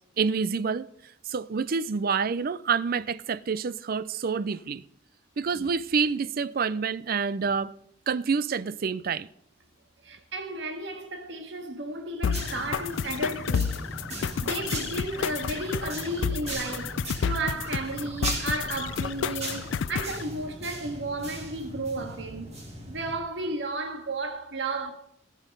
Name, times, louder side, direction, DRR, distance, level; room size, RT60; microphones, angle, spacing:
voice 1, 0.2-0.9 1.3-4.8 5.4-7.7 8.1-9.3, right 5 dB, 50° right, 0.4 m, -27 dB
voice 2, 10.0-13.8 14.4-22.5 22.9-24.9, right 2 dB, 65° right, 1.7 m, -33 dB
sound 1, 12.2-20.2, left 6 dB, 80° left, 0.4 m, -30 dB
sound 2, 12.3-23.2, right 1 dB, 35° right, 2.8 m, -38 dB
18.5 x 6.3 x 5.3 m
head